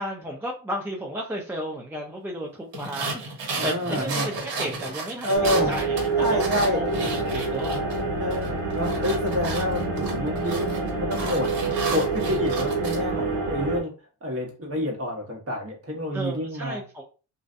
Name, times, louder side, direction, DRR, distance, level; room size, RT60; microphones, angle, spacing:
voice 1, 0.0-3.2 3.6-6.5 6.8-6.9 7.2-7.8 16.1-17.0, equal, 5° right, -1 dB, 0.4 m, -33 dB
sound 1, 2.7-8.0 8.3-13.0, right 3 dB, 65° right, 1.2 m, -33 dB
voice 2, 3.6-4.3 5.2-5.7 6.2-6.8 8.2-10.7 11.0-11.5 11.9-13.9 14.2-16.8, left 1 dB, 30° right, 0 dB, 1.1 m, -28 dB
sound 2, 5.3-13.8, right 3 dB, 85° right, 0.9 m, -27 dB
2.5 x 2.2 x 2.5 m, 0.35 s
cardioid pair, 75°, 46 cm